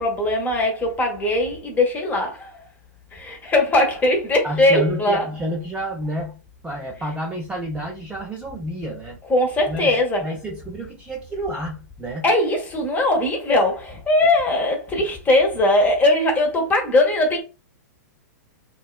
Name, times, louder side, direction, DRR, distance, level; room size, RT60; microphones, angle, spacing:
voice 1, 0.0-2.7 3.1-5.3 9.3-10.2 12.2-17.4, left 1 dB, 15° left, 0.8 m, -20 dB
voice 2, 4.4-9.2 9.7-12.3, equal, 10° right, 0.5 m, -30 dB
2.6 x 2.2 x 2.4 m
hypercardioid pair, 130°, 10 cm